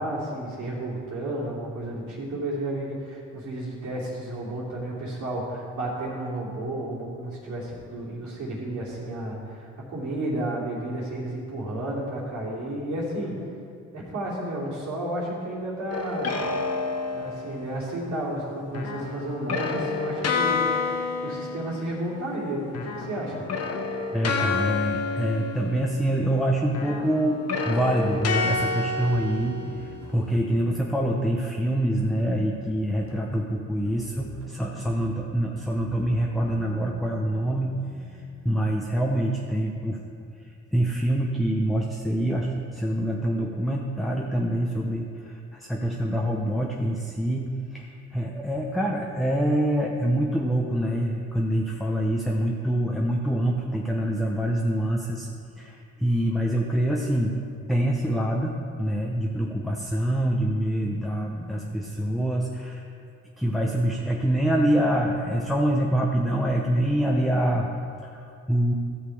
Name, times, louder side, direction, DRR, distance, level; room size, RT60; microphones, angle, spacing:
voice 1, 0.0-13.4 13.9-16.4 17.1-20.9 21.2-22.6 22.9-23.4, right 1 dB, 75° right, -6 dB, 3.0 m, -32 dB
sound 1, 15.9-17.8 18.7-22.4 22.7-26.3 26.7-30.2, left 4 dB, 55° left, 1.1 m, -29 dB
voice 2, 24.1-27.4 27.7-37.8 38.1-40.0 40.7-55.3 55.6-57.4 57.7-62.8 63.4-67.7 68.0-68.7, right 1 dB, ahead, -1 dB, 0.8 m, -25 dB
sound 2, 27.7-40.6, right 3 dB, 50° right, 1.3 m, -46 dB
14.0 x 6.7 x 4.8 m, 2.4 s
cardioid pair, 90°, 30 cm